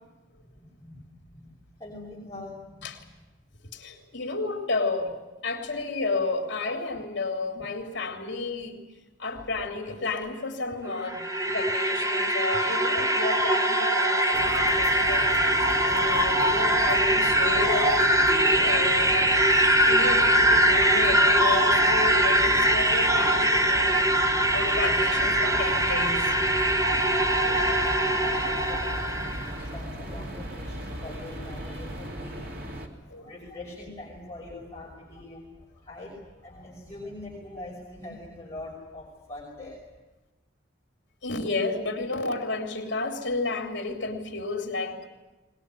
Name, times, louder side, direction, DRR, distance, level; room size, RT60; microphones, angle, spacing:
voice 1, 0.5-3.0 9.4-9.5 27.3-29.2 29.6-39.8, left 2 dB, 15° left, -5 dB, 5.6 m, -43 dB
voice 2, 3.7-5.2 5.4-8.8 9.2-15.3 15.8-19.3 19.8-24.0 24.2-26.4 33.1-33.3 41.2-45.1, left 3 dB, 70° left, 3 dB, 3.2 m, -32 dB
sound 1, 10.9-29.5, right 1 dB, 15° right, 1.1 m, -22 dB
sound 2, 14.3-32.9, right 1 dB, 50° right, 3.0 m, -38 dB
sound 3, 24.4-32.1, equal, 75° right, 5.4 m, -42 dB
20.5 x 20.5 x 9.8 m, 1.1 s
head